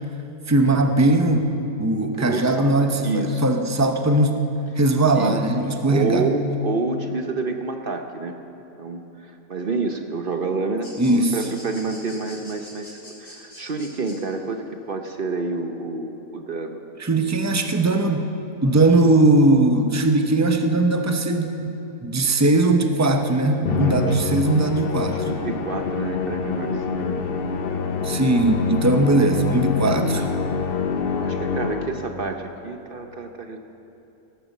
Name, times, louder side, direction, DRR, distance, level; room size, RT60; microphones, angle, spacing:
voice 1, 0.5-1.5 1.8-4.4 4.8-6.2 11.0-11.4 17.0-18.3 18.6-21.8 22.0-25.2 28.0-30.2, right 2 dB, 25° right, 5 dB, 0.3 m, -19 dB
voice 2, 2.0-2.7 3.0-3.4 5.1-5.4 5.9-8.4 8.8-16.8 24.1-24.2 25.3-27.2 29.8-30.0 31.1-33.6, right 3 dB, 50° right, 5 dB, 0.7 m, -28 dB
sound 1, 10.8-14.2, left 1 dB, 70° left, 4.5 m, -43 dB
Musical instrument, 23.7-32.2, left 5 dB, 45° left, 0.8 m, -26 dB
18.0 x 10.5 x 7.2 m, 2.9 s
omnidirectional pair, 1.8 m